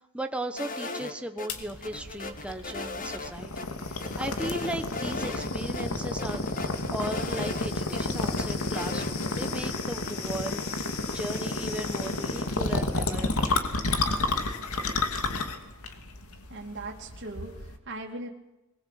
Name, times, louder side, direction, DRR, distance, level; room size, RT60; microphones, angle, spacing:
voice 1, 0.0-6.4 6.9-13.5, right 1 dB, 5° right, 5 dB, 1.2 m, -37 dB
sound 1, 0.6-1.5 1.8-3.3 3.6-3.7 4.0-5.5 5.7-5.8 6.2-8.0 8.4-9.1, left 3 dB, 40° left, 2.1 m, -37 dB
sound 2, 1.5-17.8, left 2 dB, 70° left, 2.7 m, -31 dB
voice 2, 16.5-18.3, right 2 dB, 55° right, 0 dB, 2.7 m, -39 dB
22.0 x 20.5 x 8.5 m, 0.95 s
head